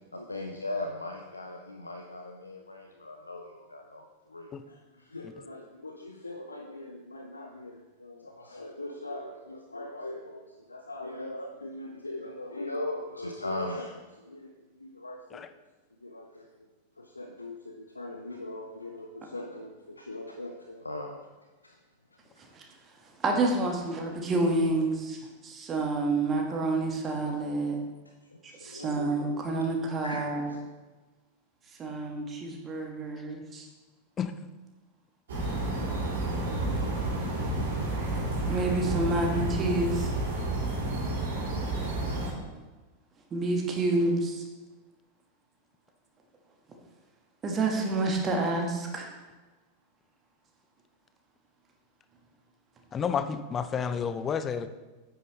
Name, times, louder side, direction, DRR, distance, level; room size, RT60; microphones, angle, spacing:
voice 1, 0.1-14.5 14.8-15.4 16.0-16.5 17.0-21.3 21.6-21.8 28.3-29.1 30.0-30.2, left 2 dB, 80° left, 3 dB, 0.6 m, -40 dB
voice 2, 23.2-27.8 28.6-30.5 31.8-33.7 38.5-40.1 43.3-44.4 47.4-49.2, right 2 dB, 25° right, 1 dB, 1.6 m, -28 dB
sound 1, 35.3-42.3, right 2 dB, 60° right, 3.1 m, -30 dB
voice 3, 52.9-54.7, left 7 dB, 25° left, 11 dB, 0.5 m, -30 dB
9.3 x 8.7 x 3.2 m, 1.2 s
figure-of-eight pair, 90°, 0 cm